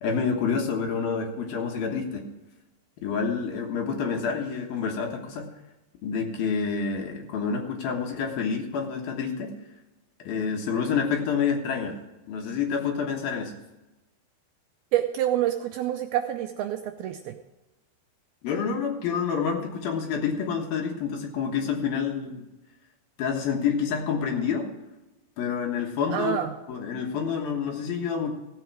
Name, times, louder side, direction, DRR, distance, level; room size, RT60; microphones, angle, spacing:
voice 1, 0.0-2.2 3.0-5.5 6.0-9.5 10.2-12.0 12.3-13.5 18.4-22.5 23.2-24.7 25.4-26.4 26.7-28.3, left 6 dB, 65° left, 1 dB, 2.8 m, -28 dB
voice 2, 14.9-17.4 26.1-26.5, right 12 dB, 80° right, 6 dB, 2.3 m, -27 dB
16.0 x 8.0 x 4.7 m, 1.1 s
omnidirectional pair, 5.0 m